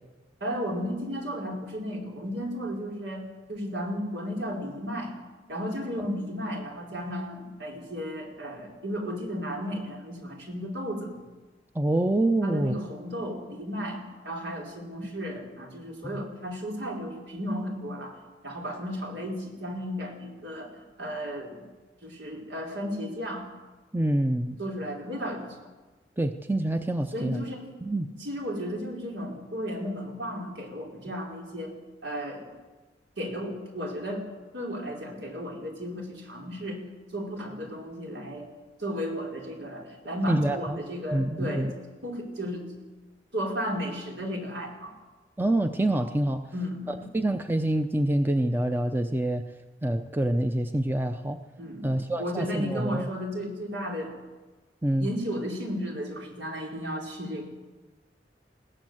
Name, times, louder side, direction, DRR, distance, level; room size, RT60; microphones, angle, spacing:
voice 1, 0.4-5.1 5.5-11.2 12.4-18.2 18.4-21.7 22.0-23.5 24.6-25.5 27.1-27.7 28.2-31.7 32.0-32.4 33.2-34.3 34.5-36.8 37.1-38.5 38.8-41.7 42.0-42.7 43.3-45.0 46.5-47.2 51.6-54.1 55.0-57.5, equal, 85° right, 0 dB, 4.7 m, -34 dB
voice 2, 11.8-12.7 23.9-24.6 26.2-27.4 27.8-28.1 40.3-40.8 41.1-41.7 45.4-46.4 47.1-49.4 49.8-51.4 51.8-53.1 54.8-55.1, right 1 dB, 10° right, 7 dB, 0.7 m, -26 dB
21.0 x 17.0 x 7.9 m, 1.2 s
head